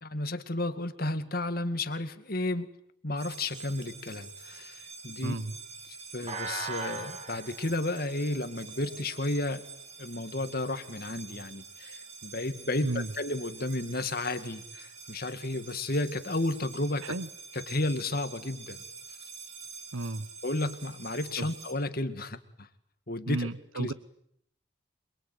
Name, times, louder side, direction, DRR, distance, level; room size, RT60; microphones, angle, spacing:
voice 1, 0.0-2.7 3.0-5.3 6.1-9.6 10.0-17.1 17.5-18.8 20.4-22.7 23.1-23.5 23.7-23.9, left 2 dB, 45° left, 10 dB, 2.0 m, -32 dB
sound 1, 3.2-21.7, right 5 dB, 30° right, 3.1 m, -44 dB
voice 2, 5.2-5.6 12.8-13.1 17.0-17.3 19.9-20.3 21.4-21.5 23.3-23.9, right 2 dB, 80° right, 15 dB, 1.1 m, -33 dB
27.0 x 22.5 x 9.3 m, 0.70 s
head